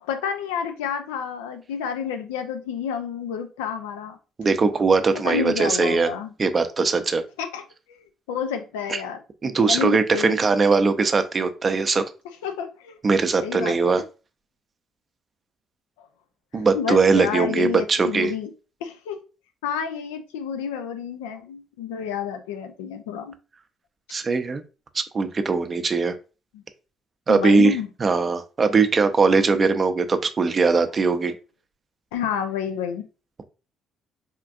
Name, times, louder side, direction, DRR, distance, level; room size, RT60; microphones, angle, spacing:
voice 1, 0.0-4.2 5.2-6.3 7.4-7.6 7.9-9.2 9.6-10.4 12.4-13.0 13.4-13.9 16.0-16.1 16.7-18.5 18.8-19.2 19.6-23.3 26.5-26.6 27.3-27.9 32.1-33.1, left 7 dB, 85° left, 0.5 m, -29 dB
voice 2, 4.4-6.1 6.4-7.2 8.9-9.0 9.4-12.0 13.0-14.0 16.5-18.3 24.1-24.6 24.9-26.1 27.3-27.7 28.0-31.3, right 4 dB, 40° right, 0.5 m, -20 dB
4.3 x 2.4 x 2.5 m
hypercardioid pair, 55°, 0 cm